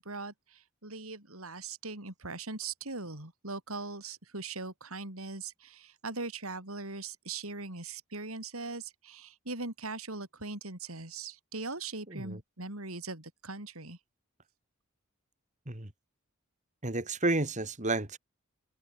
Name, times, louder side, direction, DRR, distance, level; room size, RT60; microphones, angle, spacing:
voice 1, 0.0-14.0, right 3 dB, 85° right, 5.8 m, -40 dB
voice 2, 12.1-12.4 15.7-15.9 16.8-18.2, right 2 dB, 35° right, 2.9 m, -31 dB
open air
head